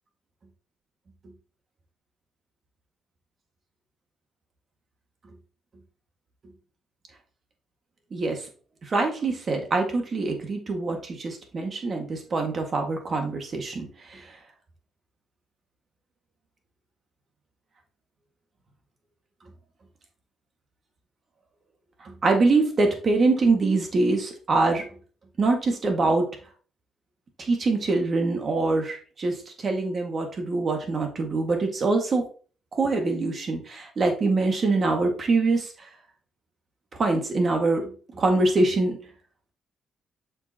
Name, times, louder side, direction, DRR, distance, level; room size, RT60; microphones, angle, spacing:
voice 1, 8.1-8.4 8.9-14.2 22.0-24.9 25.4-26.3 27.4-32.2 32.7-35.7 37.0-39.0, right 3 dB, 45° right, 3 dB, 1.9 m, -24 dB
6.8 x 5.6 x 2.9 m, 0.39 s
cardioid pair, 90°, 0 cm